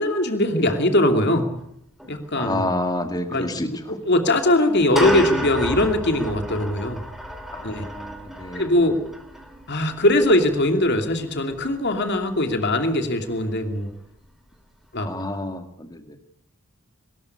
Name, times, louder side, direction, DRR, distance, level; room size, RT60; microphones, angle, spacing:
voice 1, 0.0-1.5 2.1-2.7 3.3-3.5 3.9-7.0 7.6-7.9 8.5-9.0 9.7-13.9 14.9-15.1, left 1 dB, 50° left, 6 dB, 2.8 m, -21 dB
sound 1, 1.6-1.7 2.0-2.1 3.5-3.6 4.6-13.7, equal, ahead, 2.9 m, -33 dB
voice 2, 2.4-3.7 7.5-8.7 15.0-16.2, left 1 dB, 20° left, 6 dB, 2.2 m, -29 dB
22.5 x 13.5 x 9.9 m, 0.74 s
head